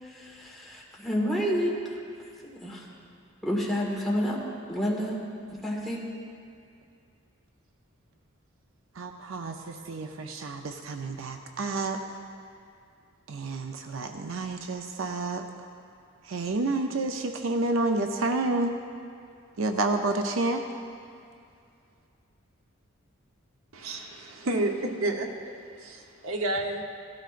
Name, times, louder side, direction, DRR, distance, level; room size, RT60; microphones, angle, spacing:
voice 1, 0.0-2.0 2.4-2.8 3.4-4.4 4.7-5.2 5.5-6.0, equal, ahead, -5 dB, 1.7 m, -29 dB
voice 2, 9.0-12.0 13.3-15.4 16.2-18.7 19.6-20.6, right 2 dB, 70° right, 4 dB, 0.6 m, -29 dB
voice 3, 23.7-26.8, right 1 dB, 90° right, 3 dB, 1.0 m, -31 dB
16.5 x 13.0 x 2.5 m, 2.4 s
head